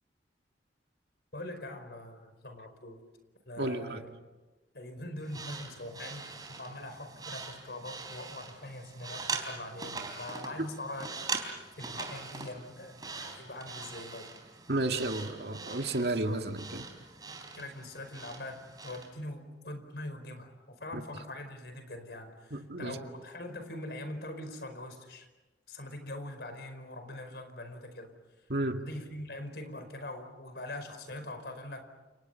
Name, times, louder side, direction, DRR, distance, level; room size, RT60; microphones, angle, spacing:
voice 1, 1.3-3.0 3.5-4.1 4.7-11.2 11.8-14.3 17.6-25.3 25.7-28.1 28.8-31.8, left 1 dB, 65° left, 4.9 m, -42 dB
voice 2, 3.6-4.0 14.7-16.9 20.9-21.0 22.5-23.0 28.5-28.9, right 2 dB, 65° right, 2.2 m, -32 dB
sound 1, 5.2-19.1, right 4 dB, 20° right, 3.9 m, -42 dB
30.0 x 29.5 x 5.7 m
head